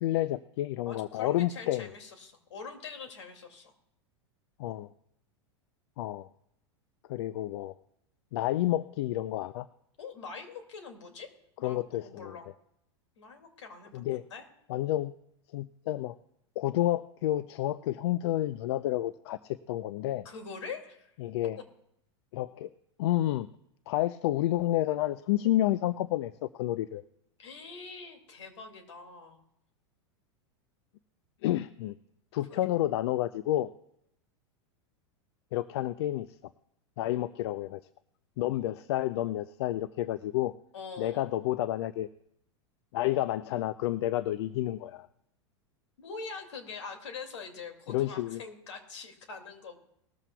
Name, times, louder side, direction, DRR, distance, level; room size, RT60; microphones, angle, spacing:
voice 1, 0.0-1.9 4.6-4.9 6.0-6.3 7.1-7.7 8.3-9.7 11.6-12.4 13.9-14.2 14.7-15.1 15.5-16.2 16.6-20.3 21.2-21.6 22.3-22.7 23.0-23.5 23.9-27.0 31.4-31.9 32.3-33.7 35.5-36.3 37.0-37.8 38.4-40.5 41.0-42.1 42.9-45.1 47.9-48.4, left 14 dB, 65° left, 15 dB, 0.5 m, -30 dB
voice 2, 0.8-3.7 10.0-11.3 11.6-12.4 13.2-14.5 20.2-21.1 27.4-29.4 32.5-32.6 40.7-41.3 46.0-49.8, left 5 dB, 80° left, 5 dB, 2.4 m, -44 dB
19.0 x 14.0 x 2.3 m, 0.76 s
hypercardioid pair, 100°, 15 cm